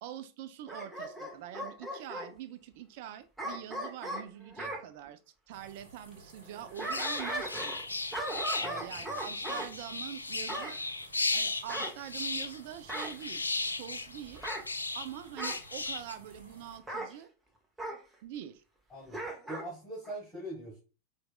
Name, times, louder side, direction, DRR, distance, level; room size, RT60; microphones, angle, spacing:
voice 1, 0.0-5.2 5.5-7.8 8.6-10.8 11.3-14.4 14.9-17.3 18.2-18.6, right 11 dB, 50° right, 10 dB, 0.3 m, -44 dB
Bark / Growling, 0.7-2.3 3.4-4.8 6.5-7.8 8.1-9.7 10.5-10.8 11.7-12.5 12.9-13.2 14.3-14.7 15.4-15.6 16.9-17.1 17.8-18.0 19.1-19.7 20.0-20.1, right 1 dB, 10° right, 0.7 m, -38 dB
sound 1, 5.5-16.8, right 2 dB, 70° right, 1.0 m, -56 dB
sound 2, 6.8-15.1 15.4-16.1, left 3 dB, 80° left, 0.3 m, -36 dB
voice 2, 18.9-20.8, right 1 dB, 15° left, -5 dB, 1.6 m, -42 dB
4.5 x 2.5 x 2.3 m, 0.32 s
figure-of-eight pair, 90°, 0 cm